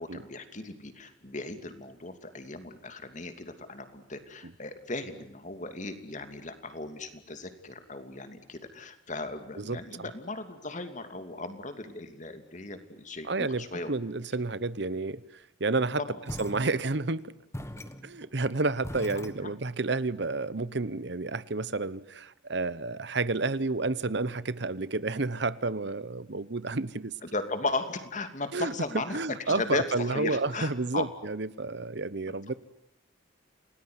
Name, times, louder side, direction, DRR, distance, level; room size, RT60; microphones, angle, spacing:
voice 1, 0.0-13.9 16.1-16.2 27.2-29.2 29.5-31.1, left 2 dB, 40° left, 2.8 m, -36 dB
voice 2, 9.6-10.1 13.3-16.0 16.4-17.3 18.0-27.1 28.5-28.7 29.1-32.5, right 3 dB, 60° right, 1.0 m, -30 dB
sound 1, 16.3-17.2 17.5-19.9, equal, 15° left, 1.6 m, -41 dB
29.0 x 19.5 x 9.7 m
head